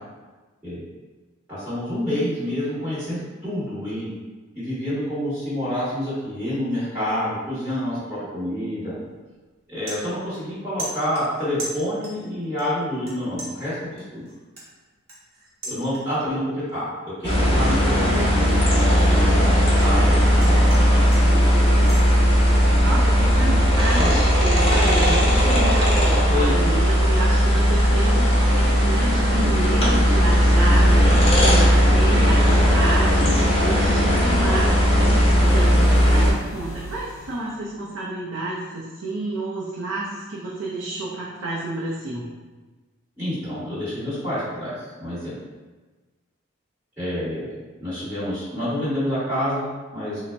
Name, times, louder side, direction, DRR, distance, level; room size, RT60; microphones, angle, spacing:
voice 1, 1.5-4.1 4.5-8.9 9.7-14.2 15.6-18.4 19.8-20.1 20.4-20.7 23.4-23.6 23.9-24.2 25.9-26.6 33.1-33.3 43.2-44.7 45.0-45.3 47.0-47.5 47.8-50.2, equal, 10° right, -15 dB, 1.2 m, -28 dB
sound 1, 8.9-9.2 9.5-10.5 10.8-12.3 12.6-13.1 13.4-16.3 16.7-17.0 17.4-19.9 20.2-22.1, right 1 dB, 50° right, 0.9 m, -38 dB
sound 2, 17.2-36.3, equal, 25° left, 0.7 m, -17 dB
voice 2, 22.8-42.3, right 2 dB, 75° right, -6 dB, 0.6 m, -30 dB
sound 3, 35.2-37.6, right 1 dB, 75° left, 0.5 m, -38 dB
4.0 x 2.1 x 3.3 m, 1.3 s
head